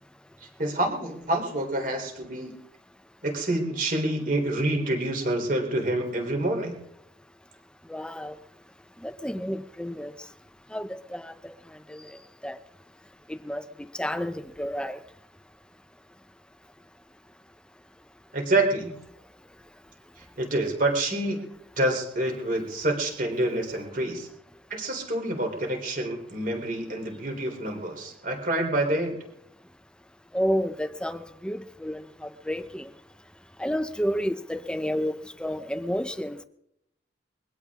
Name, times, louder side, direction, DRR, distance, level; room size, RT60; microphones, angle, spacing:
voice 1, 0.4-2.6 3.2-6.7 18.3-18.9 20.2-21.4 21.8-24.3 24.7-29.1, right 1 dB, 45° right, 2 dB, 3.6 m, -27 dB
voice 2, 7.9-8.4 9.0-10.1 10.7-11.6 11.9-12.6 13.3-15.0 30.3-32.9 33.6-36.4, equal, 5° left, 11 dB, 0.6 m, -31 dB
22.0 x 16.5 x 3.7 m, 0.81 s
head